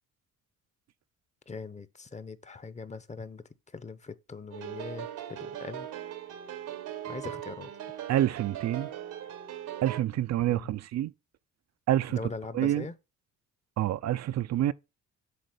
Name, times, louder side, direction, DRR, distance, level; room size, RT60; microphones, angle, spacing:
voice 1, 1.5-5.9 7.0-7.7 10.5-10.7 12.1-12.9, left 4 dB, 25° left, 0.8 m, -41 dB
sound 1, 4.5-10.0, right 11 dB, 90° right, 1.5 m, -39 dB
voice 2, 8.1-8.9 9.8-11.1 11.9-12.2 12.5-12.9 13.8-14.7, right 12 dB, 60° right, 0.5 m, -27 dB
8.1 x 3.6 x 6.6 m
cardioid pair, 90°, 30 cm